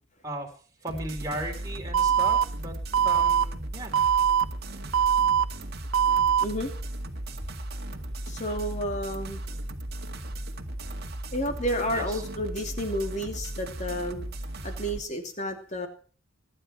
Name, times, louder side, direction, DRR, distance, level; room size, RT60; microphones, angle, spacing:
voice 1, 0.8-2.8 3.0-4.0 11.9-12.2, right 1 dB, 15° right, 1 dB, 3.8 m, -36 dB
sound 1, 0.9-15.0, right 1 dB, 50° right, 1.8 m, -36 dB
Alarm, 1.9-2.4 2.9-3.4 3.9-4.4 4.9-5.4 5.9-6.4, right 8 dB, 65° right, 1.0 m, -21 dB
voice 2, 6.4-6.7 8.3-9.4 11.3-14.3 14.6-15.9, equal, 35° left, 5 dB, 2.9 m, -31 dB
24.0 x 11.0 x 4.5 m, 0.42 s
head